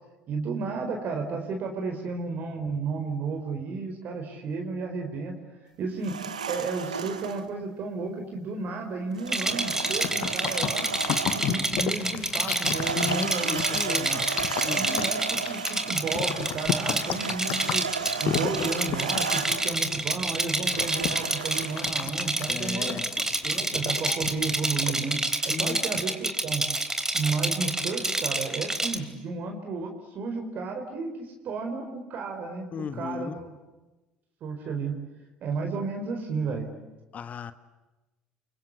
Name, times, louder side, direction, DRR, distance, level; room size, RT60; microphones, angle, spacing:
voice 1, 0.3-5.4 5.8-6.1 6.5-10.9 11.3-14.2 14.6-17.9 18.2-23.0 23.4-26.6 27.1-32.7 33.0-33.5 34.4-34.9 35.4-36.7, right 4 dB, 50° right, 3 dB, 4.5 m, -33 dB
sound 1, 6.0-7.5 9.2-11.8 12.6-19.8 20.6-21.9, right 7 dB, 90° right, 1.4 m, -34 dB
Rattle, 9.3-29.0, right 2 dB, 15° right, 3.6 m, -28 dB
sound 2, 9.5-25.3, left 11 dB, 60° left, 1.5 m, -35 dB
voice 2, 13.0-14.2 14.6-15.1 22.5-23.0 25.5-25.9 32.7-33.4 37.1-37.5, left 7 dB, 40° left, 12 dB, 1.5 m, -35 dB
29.5 x 24.5 x 8.3 m, 1.1 s
hypercardioid pair, 60°, 4 cm